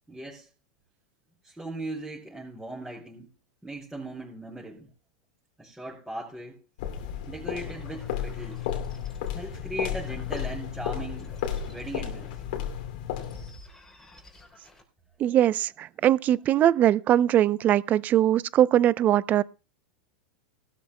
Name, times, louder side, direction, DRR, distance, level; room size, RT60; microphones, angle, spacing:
voice 1, 0.1-0.5 1.4-3.3 3.6-4.9 5.6-6.6 7.3-8.7 9.3-11.4 11.7-12.3, right 1 dB, 5° right, 5.1 m, -38 dB
sound 1, 6.8-13.6, left 9 dB, 70° left, 2.6 m, -33 dB
sound 2, 7.0-12.7 13.2-14.8, left 1 dB, 10° left, 3.5 m, -53 dB
voice 2, 15.2-19.4, right 11 dB, 35° right, 0.6 m, -21 dB
19.5 x 12.5 x 2.2 m
hypercardioid pair, 120°, 5 cm